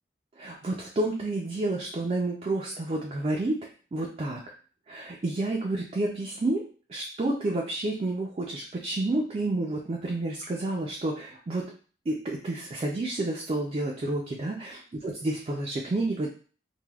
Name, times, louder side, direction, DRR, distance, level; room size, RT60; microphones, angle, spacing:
voice 1, 0.4-4.4 4.9-11.7 12.1-16.3, right 2 dB, 35° right, -1 dB, 0.3 m, -30 dB
3.2 x 2.1 x 2.3 m, 0.40 s
head